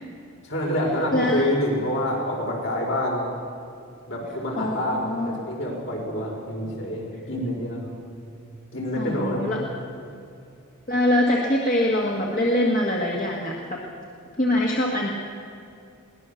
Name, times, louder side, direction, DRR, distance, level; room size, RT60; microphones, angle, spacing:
voice 1, 0.4-3.3 4.1-7.9 8.7-9.5, equal, 60° left, -1 dB, 5.1 m, -27 dB
voice 2, 1.1-1.5 4.6-5.4 9.0-9.6 10.9-13.8 14.4-15.1, left 1 dB, 40° left, -2 dB, 1.7 m, -23 dB
21.5 x 18.0 x 7.0 m, 2.5 s
head